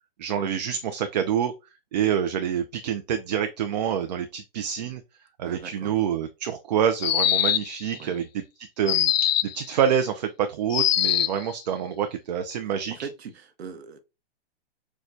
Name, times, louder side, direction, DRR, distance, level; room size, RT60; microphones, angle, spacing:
voice 1, 0.2-1.5 1.9-5.0 5.4-8.4 8.8-9.1 9.4-13.1, right 8 dB, 45° right, 0.5 m, -27 dB
voice 2, 5.4-6.0 8.0-8.2 12.6-14.0, right 6 dB, 80° right, 0.9 m, -41 dB
sound 1, 7.0-7.8 8.9-9.6 10.7-11.4, left 11 dB, 70° left, 0.5 m, -22 dB
6.3 x 2.3 x 2.6 m
hypercardioid pair, 150°, 31 cm